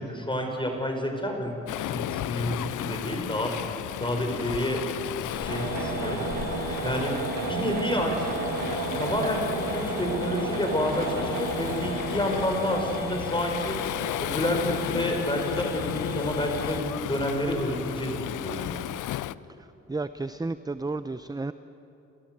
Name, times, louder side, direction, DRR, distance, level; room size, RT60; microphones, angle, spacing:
voice 1, 0.0-3.7 4.0-4.8 5.2-6.3 6.8-8.3 9.0-13.9 14.2-18.8, equal, 15° left, 3 dB, 5.8 m, -29 dB
Waves surf, 1.7-19.4, left 14 dB, 80° left, 0.5 m, -34 dB
sound 1, 5.1-16.8, left 4 dB, 60° left, 2.5 m, -37 dB
sound 2, 5.5-14.1, right 5 dB, 90° right, 2.1 m, -34 dB
voice 2, 19.9-21.5, right 3 dB, 15° right, 13 dB, 0.6 m, -32 dB
28.0 x 15.0 x 8.0 m, 3.0 s
supercardioid pair, 55°, 30 cm